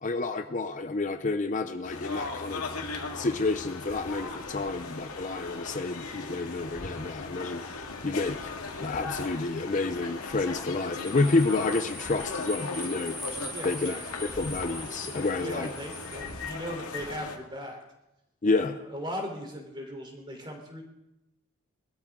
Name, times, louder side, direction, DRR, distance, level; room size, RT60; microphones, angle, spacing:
voice 1, 0.0-2.6 3.1-8.5 8.8-13.4 13.6-14.0 14.4-15.7 18.4-18.8, left 3 dB, 35° left, 8 dB, 0.5 m, -29 dB
sound 1, 1.8-17.4, left 3 dB, 90° left, 2.0 m, -38 dB
sound 2, 11.0-16.4, equal, ahead, 0.9 m, -42 dB
voice 2, 13.5-14.0 15.4-17.8 18.4-20.8, equal, 20° right, 2 dB, 3.3 m, -38 dB
21.5 x 13.0 x 3.7 m, 0.92 s
head